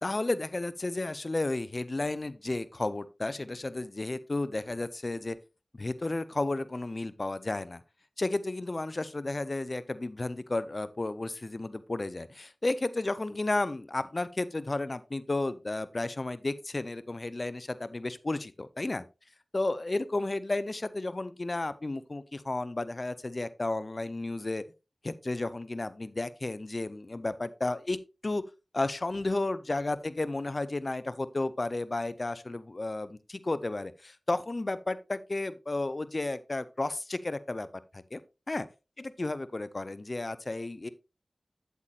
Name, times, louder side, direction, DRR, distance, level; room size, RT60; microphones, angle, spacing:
voice 1, 0.0-5.4 5.7-7.8 8.2-19.0 19.5-24.6 25.0-28.4 28.7-37.7 37.9-38.2 38.5-38.6 39.0-40.9, left 2 dB, 50° left, 15 dB, 0.6 m, -33 dB
8.9 x 8.1 x 2.4 m, 0.28 s
cardioid pair, 45°, 0 cm